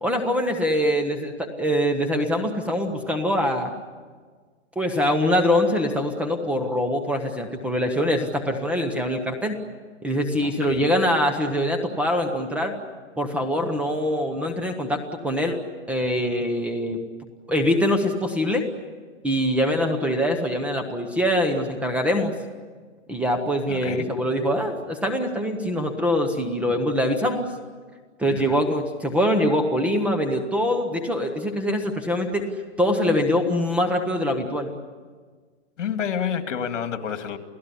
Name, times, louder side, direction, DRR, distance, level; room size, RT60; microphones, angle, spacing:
voice 1, 0.0-3.7 4.8-9.6 10.0-12.7 13.2-15.6 15.9-17.0 17.5-18.6 19.2-22.3 23.1-27.5 28.2-32.4 32.8-34.7, equal, 5° right, 4 dB, 0.9 m, -23 dB
voice 2, 10.4-10.9 23.7-24.1 28.3-28.6 35.8-37.4, left 8 dB, 75° left, 7 dB, 2.5 m, -29 dB
29.0 x 17.0 x 9.9 m, 1.5 s
hypercardioid pair, 165°, 37 cm